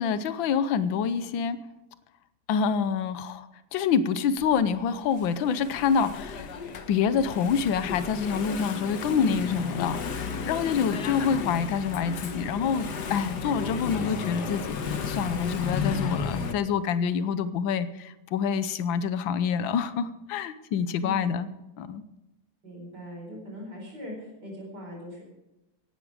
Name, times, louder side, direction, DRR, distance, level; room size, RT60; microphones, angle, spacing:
voice 1, 0.0-1.6 2.5-3.5 3.7-6.5 6.9-21.5 21.8-22.0, left 6 dB, 75° left, 13 dB, 1.6 m, -27 dB
Engine / Mechanisms, 4.4-16.5, left 5 dB, 55° left, 1.7 m, -33 dB
voice 2, 21.0-21.4 22.6-25.2, equal, 55° right, -1 dB, 5.0 m, -40 dB
17.5 x 11.5 x 4.9 m, 0.98 s
omnidirectional pair, 2.2 m